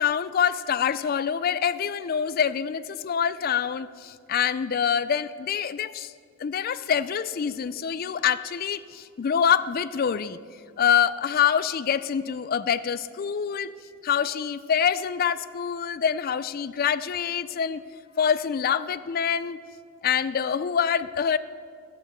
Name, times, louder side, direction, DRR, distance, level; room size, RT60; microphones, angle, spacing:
voice 1, 0.0-6.1 6.4-10.4 10.8-13.7 14.0-17.8 18.2-19.6 20.0-21.4, left 8 dB, 40° left, 15 dB, 0.3 m, -25 dB
15.5 x 6.0 x 7.4 m, 2.2 s
head